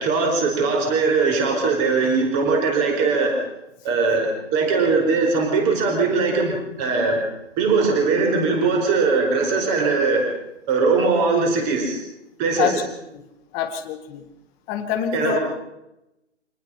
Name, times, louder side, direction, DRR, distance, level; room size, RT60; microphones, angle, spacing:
voice 1, 0.0-3.4 3.8-7.2 7.6-10.2 10.7-12.0 12.4-12.7 15.1-15.4, right 4 dB, 20° right, 3 dB, 4.7 m, -20 dB
voice 2, 13.5-14.3 14.7-15.4, left 9 dB, 10° left, 6 dB, 0.8 m, -25 dB
25.5 x 19.0 x 5.7 m, 0.90 s
hypercardioid pair, 155°, 37 cm